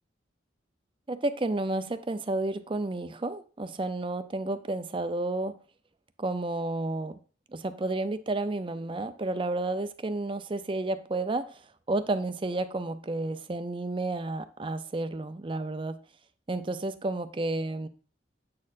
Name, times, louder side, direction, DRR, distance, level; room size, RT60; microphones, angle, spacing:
voice 1, 1.1-5.6 6.2-7.2 7.5-11.6 11.9-16.0 16.5-17.9, right 2 dB, 30° right, 0.5 m, -31 dB
8.5 x 6.5 x 2.6 m
head